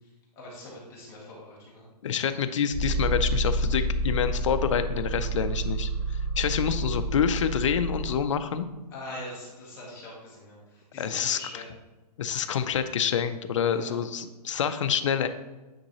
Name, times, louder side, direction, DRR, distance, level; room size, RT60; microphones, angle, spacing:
voice 1, 0.0-1.8 8.9-11.7 13.7-14.0, left 1 dB, 10° left, -5 dB, 1.2 m, -43 dB
voice 2, 2.0-8.7 11.0-11.4 12.2-15.3, left 7 dB, 50° left, 9 dB, 0.5 m, -27 dB
sound 1, 2.7-8.2, right 1 dB, 20° right, 1.0 m, -29 dB
9.1 x 3.8 x 3.0 m, 1.2 s
hypercardioid pair, 175°, 21 cm